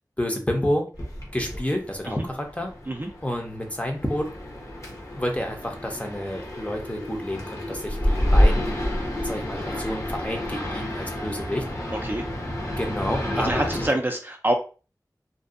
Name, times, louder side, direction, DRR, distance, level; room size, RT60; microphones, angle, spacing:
voice 1, 0.2-0.9 1.3-2.7 3.2-4.3 5.2-8.8 9.2-11.7 12.8-13.7, equal, 20° left, 2 dB, 0.7 m, -29 dB
sound 1, 0.9-13.9, equal, 45° left, 0.9 m, -28 dB
voice 2, 13.4-14.5, right 1 dB, 30° right, 3 dB, 0.4 m, -26 dB
2.6 x 2.3 x 2.4 m, 0.35 s
wide cardioid pair, 45°, 7 cm